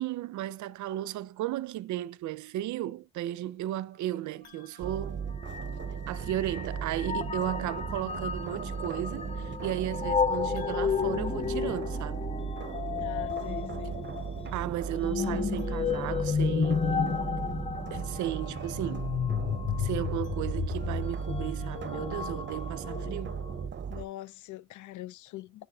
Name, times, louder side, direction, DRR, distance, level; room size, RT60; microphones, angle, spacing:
voice 1, 0.0-5.3 6.1-12.3 14.5-17.3 17.9-19.2 19.8-23.4, right 13 dB, 75° right, 0.5 m, -35 dB
sound 1, 4.4-6.1 10.5-12.6 15.5-17.1 20.0-21.2, left 6 dB, 60° left, 3.9 m, -60 dB
sound 2, 4.8-24.1, right 6 dB, 40° right, 0.7 m, -37 dB
sound 3, 4.9-5.0 5.4-23.7, left 6 dB, 20° left, 0.5 m, -32 dB
voice 2, 13.0-14.0 23.9-25.7, left 14 dB, 75° left, 0.5 m, -43 dB
10.5 x 4.5 x 2.3 m
cardioid pair, 90°, 30 cm